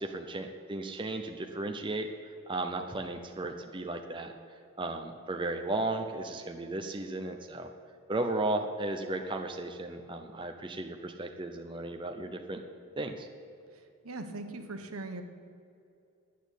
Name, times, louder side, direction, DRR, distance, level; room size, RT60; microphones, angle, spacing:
voice 1, 0.0-2.1 2.5-4.3 4.8-7.7 8.1-12.6 13.0-13.3, right 2 dB, 20° right, 4 dB, 0.6 m, -35 dB
voice 2, 13.7-15.2, right 2 dB, 75° right, 6 dB, 1.2 m, -41 dB
10.5 x 9.2 x 8.2 m, 2.6 s
head